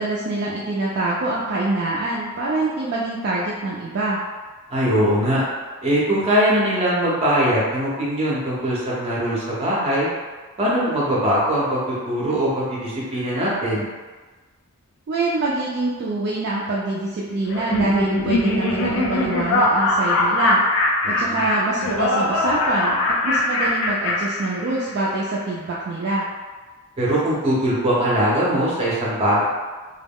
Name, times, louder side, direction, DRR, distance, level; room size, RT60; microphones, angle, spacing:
voice 1, 0.0-4.2 15.1-20.6 21.1-26.3, right 2 dB, 50° right, -5 dB, 0.3 m, -25 dB
voice 2, 4.7-5.4 5.8-10.1 10.6-13.9 21.0-21.5 27.0-29.4, equal, 30° right, -6 dB, 0.7 m, -21 dB
Laughter, 17.5-25.0, left 2 dB, 60° left, 0.4 m, -21 dB
2.2 x 2.0 x 3.5 m, 1.4 s
head